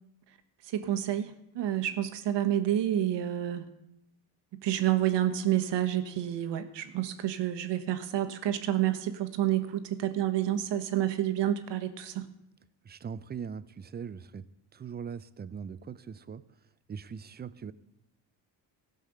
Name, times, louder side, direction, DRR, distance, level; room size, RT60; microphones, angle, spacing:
voice 1, 0.7-3.6 4.5-12.3, right 12 dB, 65° right, 9 dB, 1.4 m, -29 dB
voice 2, 12.8-14.5 14.7-16.4 16.9-17.7, right 6 dB, 20° right, 16 dB, 0.5 m, -40 dB
15.5 x 5.6 x 6.7 m, 0.81 s
supercardioid pair, 80°, 46 cm